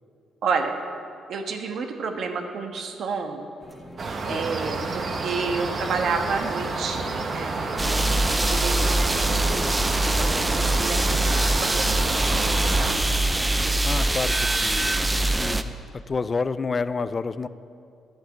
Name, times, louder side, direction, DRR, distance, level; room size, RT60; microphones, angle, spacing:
voice 1, 0.4-0.7 1.3-3.5 4.3-7.0 7.3-7.5 8.1-13.0, right 4 dB, 65° right, 4 dB, 1.4 m, -30 dB
sound 1, 3.6-13.7, equal, 5° left, 1.6 m, -43 dB
sound 2, 4.0-13.0, right 3 dB, 45° right, 1.4 m, -30 dB
voice 2, 7.8-8.2 13.8-15.0 15.4-17.5, left 4 dB, 35° left, 15 dB, 0.4 m, -30 dB
sound 3, 7.8-15.6, right 2 dB, 10° right, 0.6 m, -23 dB
12.0 x 7.9 x 9.2 m, 2.5 s
cardioid pair, 90°, 0 cm